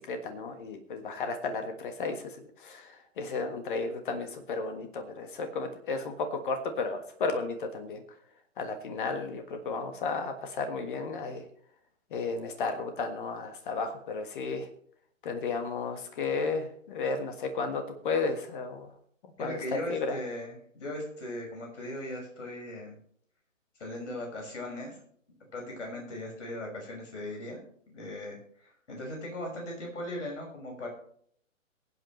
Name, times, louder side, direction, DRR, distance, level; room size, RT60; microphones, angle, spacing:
voice 1, 0.0-2.3 2.6-8.0 8.6-11.4 12.1-14.7 15.2-18.9 19.4-20.2, left 4 dB, 40° left, 7 dB, 1.6 m, -33 dB
voice 2, 19.4-23.0 23.8-25.0 25.5-27.6 27.9-30.9, left 1 dB, 60° left, 0 dB, 6.1 m, -38 dB
22.5 x 8.2 x 3.2 m, 0.62 s
figure-of-eight pair, 130°, 40 cm